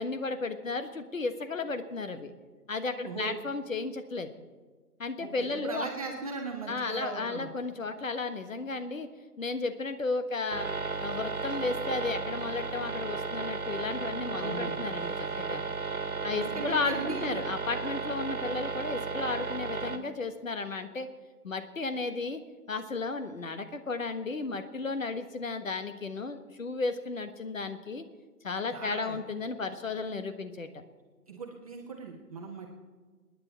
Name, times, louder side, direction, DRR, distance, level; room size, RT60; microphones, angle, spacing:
voice 1, 0.0-2.3 2.7-4.3 5.0-5.9 6.7-9.1 9.4-10.7 11.0-15.6 16.2-21.1 21.4-22.4 22.7-28.0 28.4-30.7, left 3 dB, 55° left, 9 dB, 1.4 m, -34 dB
voice 2, 5.2-7.5 14.4-14.8 16.3-17.4 28.7-29.2 31.3-32.7, right 4 dB, 25° right, 0 dB, 1.2 m, -38 dB
sound 1, 10.5-20.0, right 4 dB, 60° right, 1.7 m, -34 dB
25.5 x 10.0 x 4.5 m, 1.4 s
figure-of-eight pair, 145°, 47 cm